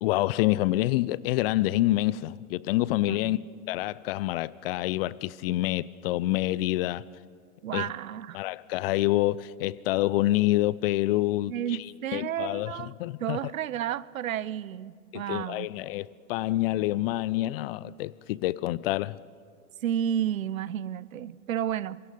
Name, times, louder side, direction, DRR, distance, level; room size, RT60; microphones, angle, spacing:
voice 1, 0.0-3.4 3.7-7.0 7.7-7.9 8.3-11.8 12.1-13.4 15.1-19.2, left 17 dB, 45° left, 0.6 m, -27 dB
voice 2, 3.1-3.4 7.6-8.4 11.5-12.9 13.2-15.7 19.8-22.0, right 10 dB, 75° right, 0.8 m, -32 dB
26.0 x 23.0 x 5.4 m
hypercardioid pair, 105°, 42 cm